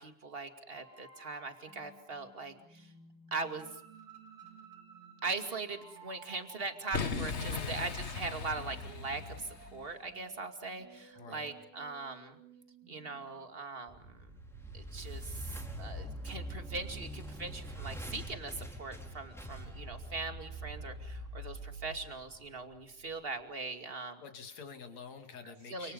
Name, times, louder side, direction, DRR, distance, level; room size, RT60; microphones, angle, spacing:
voice 1, 0.0-2.9 3.3-3.8 5.2-12.4 12.9-14.3 14.7-24.2 25.7-25.9, right 3 dB, 20° right, 7 dB, 2.3 m, -41 dB
sound 1, 0.7-13.5, right 4 dB, 75° right, 4.7 m, -56 dB
Boom, 6.9-9.9, left 5 dB, 40° left, 1.0 m, -38 dB
voice 2, 7.3-7.9 11.2-11.5 24.2-25.9, left 5 dB, 65° left, 6 dB, 3.9 m, -47 dB
sound 2, 13.9-23.0, right 1 dB, ahead, 4.4 m, -44 dB
30.0 x 28.5 x 5.4 m, 0.63 s
omnidirectional pair, 3.4 m